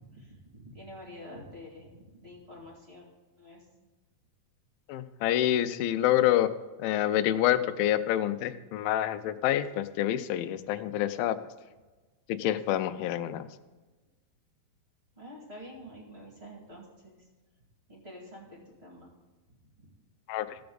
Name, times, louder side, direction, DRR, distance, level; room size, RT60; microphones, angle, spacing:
voice 1, 0.0-3.1 3.4-3.7 15.2-17.3 17.9-19.1 19.8-19.9, equal, 25° right, -2 dB, 1.6 m, -48 dB
voice 2, 4.9-6.5 6.8-11.4 12.3-13.5 20.3-20.6, left 12 dB, 85° left, 12 dB, 2.4 m, -27 dB
16.0 x 6.9 x 3.9 m, 1.3 s
omnidirectional pair, 4.2 m